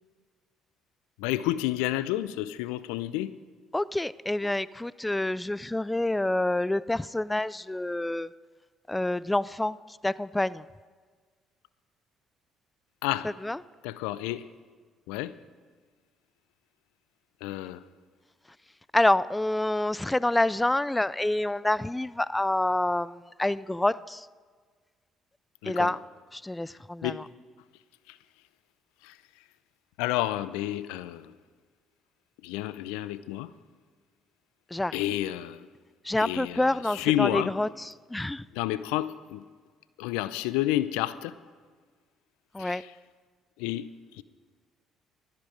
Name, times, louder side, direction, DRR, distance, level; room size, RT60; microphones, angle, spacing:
voice 1, 1.2-3.3 13.0-13.3 13.8-14.4 15.1-15.3 17.4-17.8 25.6-26.0 27.0-27.2 29.1-29.2 30.0-31.3 32.4-33.5 34.9-35.6 36.2-37.5 38.5-39.4 40.0-41.3 42.6-42.9 43.6-43.9 44.2-44.3, left 15 dB, 80° left, 0.5 m, -30 dB
voice 2, 3.7-8.3 8.9-9.7 10.0-10.6 13.4-13.6 18.9-23.1 23.4-24.2 25.7-26.0 26.4-27.1 34.7-34.9 36.1-37.7 38.1-38.4 42.6-42.8, left 1 dB, 10° left, 0.4 m, -27 dB
16.0 x 13.0 x 5.0 m
hypercardioid pair, 55°, 0 cm